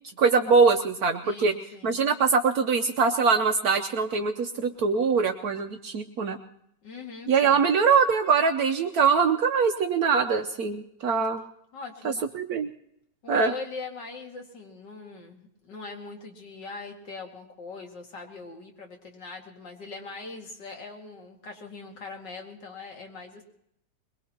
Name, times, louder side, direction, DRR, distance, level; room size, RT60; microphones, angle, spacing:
voice 1, 0.2-1.5 1.8-6.4 7.3-11.4 12.0-12.7 13.3-13.5, right 5 dB, 65° right, 6 dB, 1.2 m, -23 dB
voice 2, 1.2-2.0 6.8-7.7 11.7-12.2 13.2-23.4, left 4 dB, 85° left, 1 dB, 2.8 m, -41 dB
22.0 x 22.0 x 2.9 m, 0.75 s
omnidirectional pair, 1.8 m